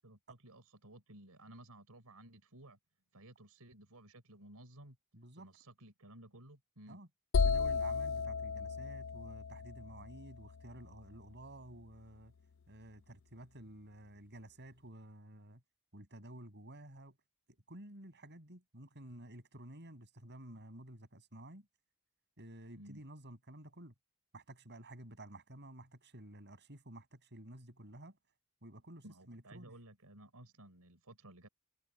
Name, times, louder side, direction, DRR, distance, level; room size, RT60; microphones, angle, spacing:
voice 1, 0.0-2.8 3.1-5.0 5.4-7.0 22.8-23.0 29.0-31.5, right 1 dB, 85° right, 4.3 m, -56 dB
voice 2, 5.1-5.5 6.9-7.1 7.4-12.3 12.7-15.6 15.9-17.2 17.5-21.7 22.4-23.9 24.3-28.2 28.6-29.7, right 1 dB, 50° right, 8.0 m, -52 dB
sound 1, 7.3-11.1, left 5 dB, 60° left, 0.4 m, -34 dB
head